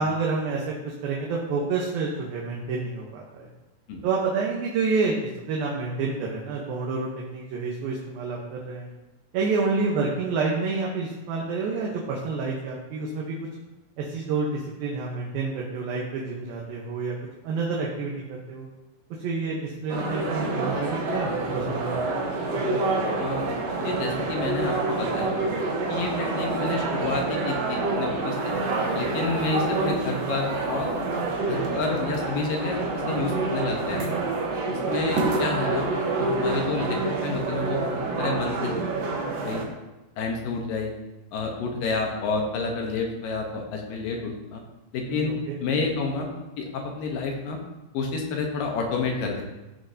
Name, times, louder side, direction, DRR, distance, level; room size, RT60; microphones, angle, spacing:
voice 1, 0.0-3.5 4.0-5.2 5.5-8.9 9.3-13.4 14.0-17.2 17.4-18.7 19.2-22.1 22.6-22.8 45.1-45.6, right 4 dB, 75° right, -3 dB, 2.9 m, -28 dB
sound 1, 19.9-39.6, right 2 dB, 60° right, 1.9 m, -27 dB
voice 2, 23.2-23.5 23.8-25.4 25.9-28.5 28.9-30.9 31.5-32.8 33.1-34.1 34.9-35.9 36.2-38.8 39.4-39.6 40.2-40.9 41.3-44.6 44.9-45.3 45.6-46.3 46.6-47.6 47.9-49.4, left 3 dB, 70° left, 1 dB, 2.7 m, -29 dB
14.5 x 6.6 x 2.8 m, 1.0 s
omnidirectional pair, 4.3 m